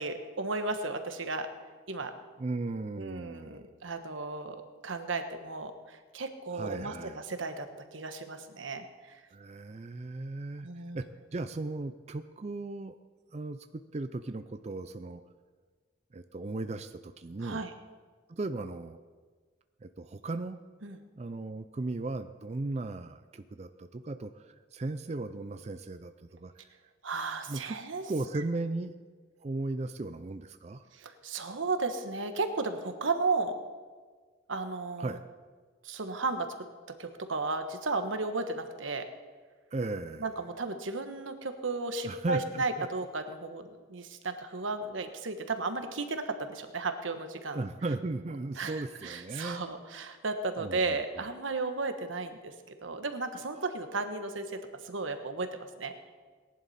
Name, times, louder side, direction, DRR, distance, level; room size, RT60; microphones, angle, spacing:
voice 1, 0.0-1.5 1.9-2.1 3.0-4.6 4.8-7.7 7.9-9.2 10.6-11.1 17.4-17.7 20.8-21.0 27.0-28.1 30.9-33.6 34.5-35.2 35.8-36.5 37.0-39.0 40.2-47.6 48.6-52.5 52.8-55.9, right 3 dB, 90° right, 8 dB, 1.2 m, -34 dB
voice 2, 2.4-3.6 6.5-7.2 9.3-10.7 10.9-11.1 11.3-13.0 13.3-15.2 16.1-17.6 18.3-19.0 19.8-20.6 21.2-26.1 26.4-26.7 27.5-27.7 28.1-28.9 29.4-30.8 35.0-35.2 39.7-40.3 42.0-42.9 47.5-49.6 50.6-51.0, right 2 dB, 35° right, 9 dB, 0.4 m, -36 dB
18.5 x 11.0 x 4.2 m, 1.5 s
head